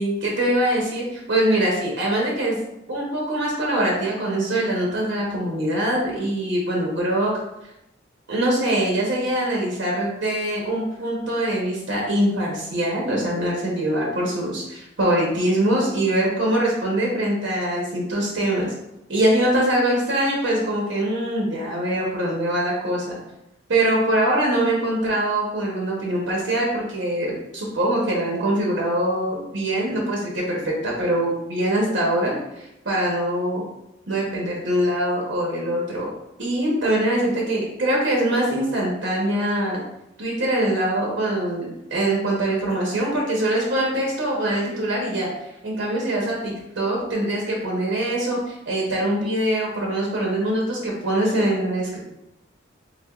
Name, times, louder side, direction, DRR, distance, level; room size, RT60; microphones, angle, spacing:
voice 1, 0.0-2.6 2.9-7.3 8.3-18.7 19.1-23.2 23.7-33.6 34.1-36.1 36.4-39.8 40.2-45.3 45.6-52.0, right 1 dB, 70° right, -2 dB, 0.8 m, -23 dB
3.5 x 3.3 x 2.3 m, 0.87 s
head